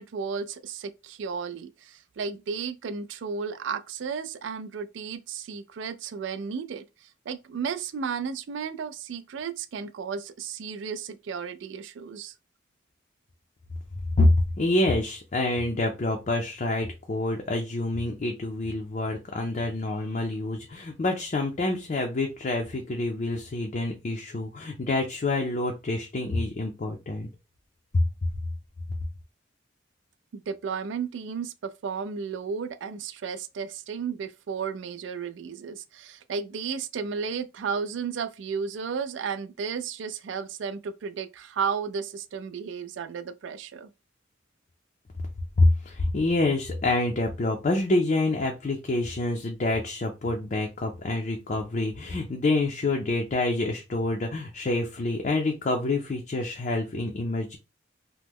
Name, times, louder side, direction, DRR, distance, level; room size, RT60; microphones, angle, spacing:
voice 1, 0.0-12.3 30.3-43.9, right 6 dB, 70° right, 0.3 m, -33 dB
voice 2, 14.2-27.3 45.6-57.6, left 2 dB, 40° left, 0.4 m, -27 dB
3.0 x 2.1 x 3.5 m
head